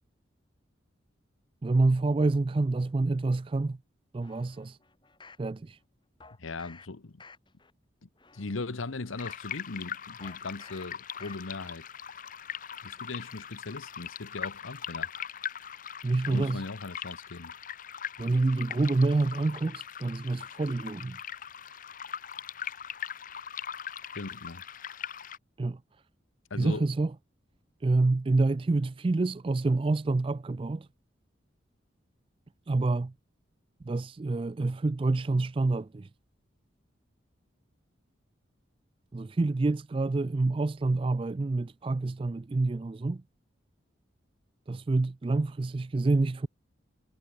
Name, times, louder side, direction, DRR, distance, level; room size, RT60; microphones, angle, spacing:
voice 1, 1.6-3.8 4.1-4.8 5.4-5.8 16.0-16.6 18.2-21.2 25.6-25.8 26.6-27.1 27.8-30.9 32.7-33.1 33.9-36.1 39.1-43.2 44.7-46.5, right 3 dB, 25° right, 0.3 m, -27 dB
sound 1, 4.2-5.5 6.2-6.9 7.2-7.7 8.2-9.5 10.2-10.9 11.2-11.7 12.1-12.2, left 4 dB, 25° left, 3.2 m, -53 dB
voice 2, 6.4-7.2 8.0-11.9 12.8-15.1 16.3-17.5 24.1-24.6 26.5-26.9, left 3 dB, 90° left, 1.1 m, -39 dB
sound 2, 9.2-25.4, left 8 dB, 45° left, 0.7 m, -40 dB
head